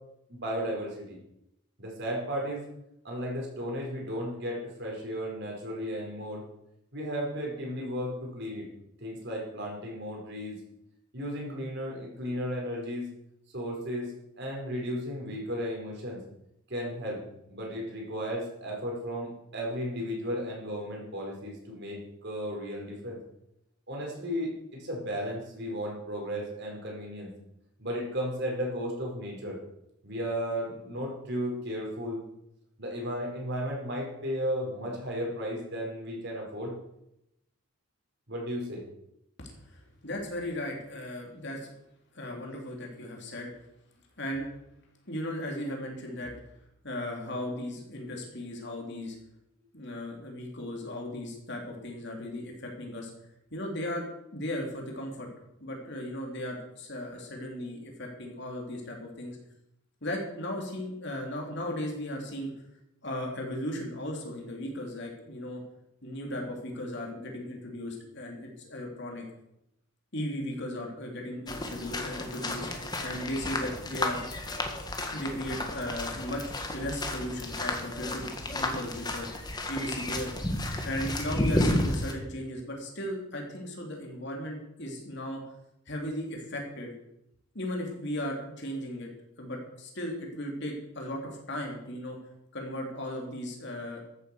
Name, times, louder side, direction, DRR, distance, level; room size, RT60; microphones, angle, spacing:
voice 1, 0.3-1.2 1.8-2.6 3.0-6.4 6.9-8.7 9.0-10.6 11.1-13.1 13.5-14.1 14.4-16.2 16.7-17.2 17.5-23.2 23.9-27.3 27.8-29.6 30.0-32.2 32.8-36.7 38.3-38.8, equal, 50° right, -1 dB, 5.0 m, -34 dB
voice 2, 39.4-41.7 42.1-43.5 44.2-44.5 45.1-46.3 46.8-49.2 49.7-53.1 53.5-55.3 55.6-59.4 60.0-62.5 63.0-65.6 66.0-69.2 70.1-72.7 73.0-74.2 75.1-76.4 76.7-80.3 80.8-85.4 85.9-86.9 87.5-89.1 89.4-92.2 92.5-94.0, left 1 dB, 50° left, 1 dB, 3.4 m, -36 dB
sound 1, 71.5-82.1, left 1 dB, 20° left, 1.6 m, -32 dB
14.0 x 8.5 x 7.1 m, 0.81 s
head